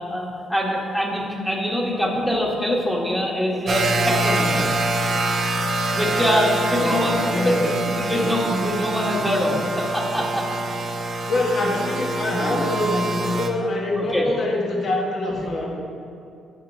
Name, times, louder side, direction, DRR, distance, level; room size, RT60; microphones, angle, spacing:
voice 1, 0.1-4.7 5.9-7.2 7.4-10.8 12.4-12.6 14.0-14.3, equal, 5° left, -3 dB, 1.4 m, -24 dB
sound 1, 3.7-13.5, right 2 dB, 50° right, 0.7 m, -25 dB
voice 2, 6.8-7.6 8.1-8.3 11.0-15.7, left 2 dB, 55° left, -1 dB, 1.2 m, -25 dB
10.5 x 5.1 x 2.7 m, 2.6 s
cardioid pair, 90°, 0 cm